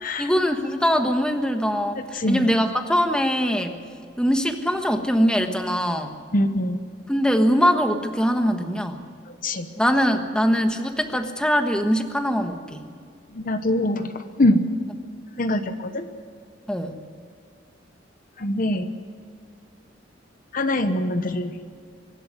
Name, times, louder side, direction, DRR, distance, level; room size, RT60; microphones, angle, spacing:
voice 1, 0.2-3.8 4.2-6.1 7.1-9.0 9.8-12.8 16.7-17.0, equal, 5° left, 5 dB, 1.3 m, -22 dB
voice 2, 2.1-2.5 6.3-6.8 9.3-9.7 13.3-14.7 15.4-16.1 18.4-18.9 20.5-21.5, left 1 dB, 50° left, 8 dB, 1.0 m, -23 dB
24.5 x 11.5 x 9.5 m, 2.2 s
head